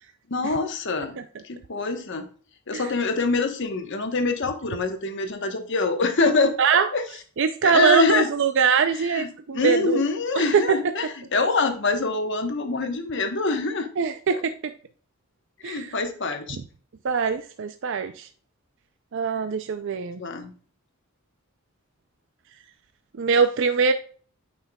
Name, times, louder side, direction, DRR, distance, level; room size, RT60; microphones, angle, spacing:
voice 1, 0.3-1.1 1.4-2.2 2.7-6.5 6.9-7.0 7.6-8.3 9.1-9.3 9.5-13.9 14.3-14.4 15.6-16.6 20.2-20.5, left 3 dB, 55° left, 6 dB, 1.1 m, -24 dB
voice 2, 6.6-6.9 7.4-10.0 10.3-10.8 14.0-14.5 15.6-15.9 16.5-16.6 17.0-18.3 19.1-20.2 23.2-23.9, right 6 dB, 60° right, 9 dB, 0.5 m, -22 dB
9.6 x 5.7 x 2.3 m, 0.42 s
head